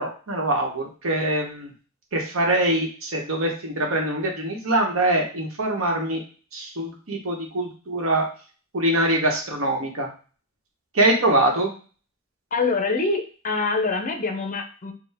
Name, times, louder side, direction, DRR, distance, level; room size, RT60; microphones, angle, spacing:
voice 1, 0.0-1.7 2.1-6.2 6.5-8.2 8.7-10.1 10.9-11.7, right 1 dB, 75° right, 1 dB, 1.0 m, -23 dB
voice 2, 12.5-14.9, left 3 dB, 40° left, 5 dB, 0.6 m, -25 dB
4.5 x 2.2 x 3.4 m, 0.38 s
head